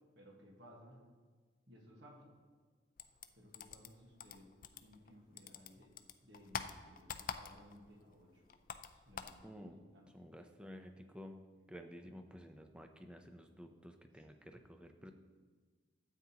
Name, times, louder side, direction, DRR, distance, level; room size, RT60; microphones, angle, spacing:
voice 1, 0.1-1.0 1.7-2.3 3.3-4.5 4.8-5.9 6.2-8.4 8.9-10.1 14.1-14.3, equal, 60° right, 0 dB, 1.5 m, -60 dB
sound 1, 3.0-5.1 5.4-7.9 8.1-9.4, left 7 dB, 45° left, 0.4 m, -46 dB
voice 2, 9.4-9.8 10.1-11.4 11.7-15.1, equal, 5° right, 6 dB, 0.5 m, -52 dB
13.0 x 8.4 x 2.9 m, 1.5 s
head